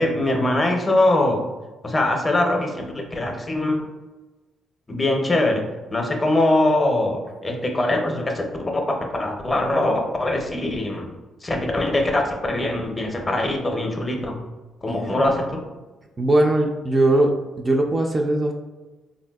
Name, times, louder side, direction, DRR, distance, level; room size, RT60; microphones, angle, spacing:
voice 1, 0.0-1.4 1.8-3.8 4.9-5.6 5.9-11.1 11.4-14.4 14.8-15.6, left 1 dB, 25° left, 2 dB, 0.5 m, -22 dB
voice 2, 16.2-18.5, right 1 dB, 25° right, 2 dB, 0.3 m, -20 dB
3.3 x 2.6 x 2.2 m, 1.2 s
cardioid pair, 90°, 0 cm